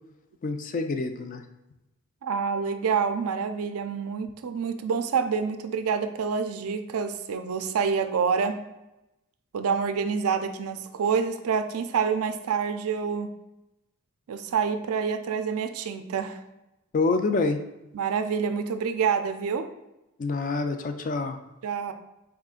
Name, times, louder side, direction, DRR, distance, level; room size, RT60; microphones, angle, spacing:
voice 1, 0.4-1.4 16.9-17.6 20.2-21.4, left 3 dB, 35° left, 7 dB, 0.3 m, -26 dB
voice 2, 2.2-8.6 9.5-13.3 14.3-16.4 17.9-19.7 21.6-21.9, right 6 dB, 75° right, 9 dB, 0.4 m, -27 dB
4.6 x 3.7 x 2.4 m, 0.94 s
head